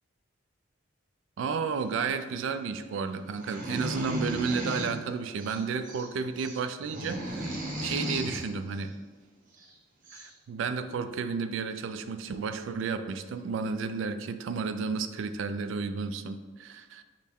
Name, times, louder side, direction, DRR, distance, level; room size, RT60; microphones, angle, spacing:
voice 1, 1.4-8.9 10.1-17.0, right 5 dB, 70° right, 10 dB, 0.3 m, -32 dB
sound 1, 3.3-5.0 5.4-6.1 6.4-8.4 9.6-9.7 10.0-10.3, right 1 dB, 40° right, 0.8 m, -35 dB
6.2 x 2.1 x 3.5 m, 1.3 s
head